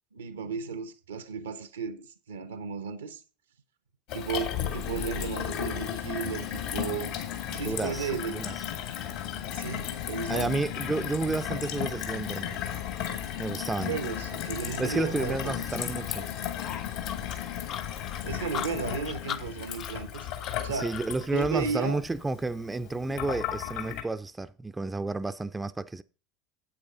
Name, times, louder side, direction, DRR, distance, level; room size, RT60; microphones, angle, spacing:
voice 1, 0.1-3.2 4.1-7.1 7.5-8.4 9.5-10.6 13.9-15.6 18.2-20.2 20.6-20.9 21.3-22.0, right 5 dB, 85° right, 1.0 m, -34 dB
Gurgling / Water tap faucet / Sink (filling or washing), 4.1-24.0, left 10 dB, 65° left, 2.5 m, -35 dB
voice 2, 7.5-8.6 10.3-12.6 13.4-13.9 14.8-16.3 20.7-26.0, right 3 dB, 15° right, 0.5 m, -31 dB
sound 1, 16.6-21.1, left 8 dB, 45° left, 0.7 m, -39 dB
8.8 x 8.4 x 3.9 m
hypercardioid pair, 80°, 0 cm